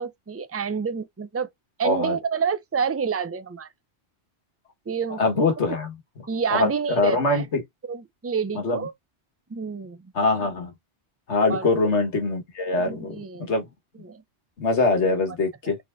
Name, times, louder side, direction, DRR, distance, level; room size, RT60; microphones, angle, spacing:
voice 1, 0.0-1.5 1.8-3.7 4.9-5.2 6.3-7.4 7.9-8.9 9.5-10.1 11.5-11.7 12.8-13.5 14.0-14.2 15.7-15.8, right 6 dB, 20° right, 0.4 m, -28 dB
voice 2, 1.8-2.2 5.2-6.0 6.5-7.6 8.6-8.9 10.2-10.7 11.3-13.7 14.6-15.8, left 3 dB, 90° left, 1.8 m, -23 dB
4.2 x 4.1 x 2.6 m
omnidirectional pair, 1.1 m